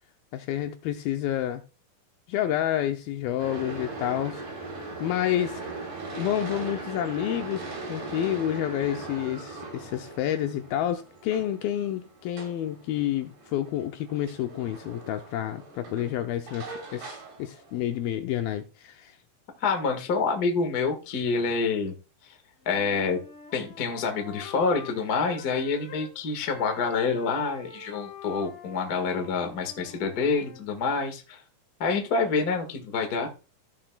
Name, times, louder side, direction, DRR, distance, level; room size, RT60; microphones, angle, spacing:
voice 1, 0.3-1.6 2.3-4.4 5.0-5.6 6.2-19.2, left 11 dB, 85° left, 2.2 m, -29 dB
sound 1, 3.4-18.1, right 3 dB, 75° right, 5.2 m, -40 dB
voice 2, 19.6-21.9 22.2-22.3 22.6-23.2 23.5-31.4 31.8-33.3, left 4 dB, 65° left, 0.9 m, -27 dB
Wind instrument woodwind instrument, 22.6-26.1 26.4-30.7, left 6 dB, 45° left, 2.1 m, -46 dB
15.5 x 7.4 x 2.3 m
omnidirectional pair, 4.7 m